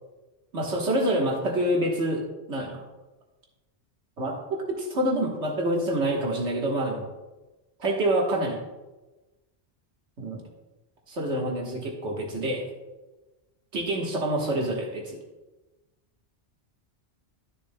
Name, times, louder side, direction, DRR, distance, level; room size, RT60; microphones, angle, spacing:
voice 1, 0.5-2.2 2.5-2.8 4.2-4.4 4.8-7.1 7.8-8.6 10.2-10.4 11.1-12.7 13.7-15.2, right 1 dB, 85° right, -1 dB, 1.7 m, -27 dB
12.5 x 6.6 x 2.2 m, 1.1 s
omnidirectional pair, 1.1 m